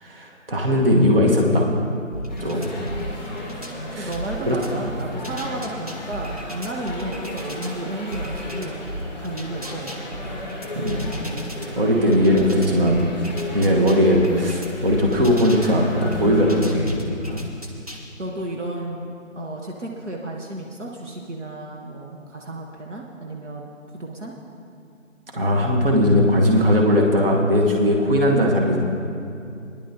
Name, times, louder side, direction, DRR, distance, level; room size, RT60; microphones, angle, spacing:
voice 1, 0.0-1.7 2.4-2.7 3.9-4.1 4.5-4.6 10.7-11.1 11.8-13.0 13.5-17.4 25.3-28.8, equal, 45° right, 0 dB, 1.4 m, -19 dB
sound 1, 2.1-3.8 4.1-7.7 8.1-11.7 12.1-15.7 16.1-18.0, right 1 dB, 30° right, 0.7 m, -35 dB
sound 2, 2.3-16.7, left 1 dB, 5° left, 1.3 m, -35 dB
voice 2, 4.0-8.8 9.2-10.1 18.2-19.1 19.4-23.7 24.0-24.3, right 1 dB, 65° right, -1 dB, 1.3 m, -32 dB
19.0 x 10.5 x 2.8 m, 2.5 s
figure-of-eight pair, 165°, 39 cm